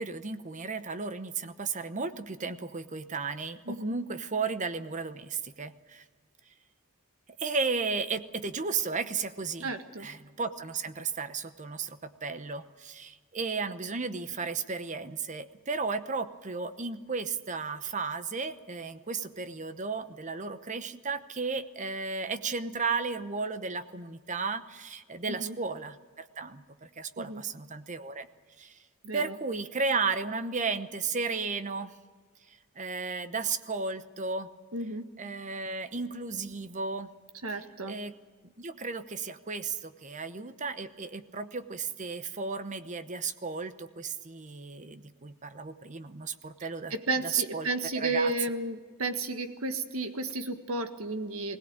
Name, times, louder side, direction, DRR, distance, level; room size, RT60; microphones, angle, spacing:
voice 1, 0.0-6.0 7.4-9.7 10.0-28.3 28.6-28.8 29.1-31.9 32.5-34.5 35.2-37.1 37.9-38.2 38.4-46.9 47.3-47.7 48.0-48.3, right 4 dB, 35° right, 11 dB, 0.9 m, -34 dB
voice 2, 9.6-10.1 25.3-25.6 27.2-27.4 29.0-29.4 34.7-35.1 37.4-38.0 46.9-51.6, right 2 dB, 70° right, 7 dB, 1.7 m, -33 dB
20.5 x 17.5 x 8.9 m, 1.5 s
head